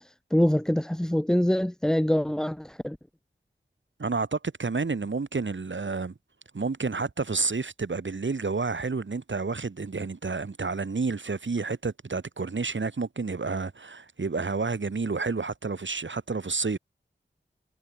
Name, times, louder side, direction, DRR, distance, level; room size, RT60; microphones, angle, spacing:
voice 1, 0.0-3.0, equal, 5° left, 0.3 m, -25 dB
voice 2, 4.0-6.1 6.5-16.8, right 4 dB, 80° right, 2.6 m, -30 dB
wide cardioid pair, 70°, 19 cm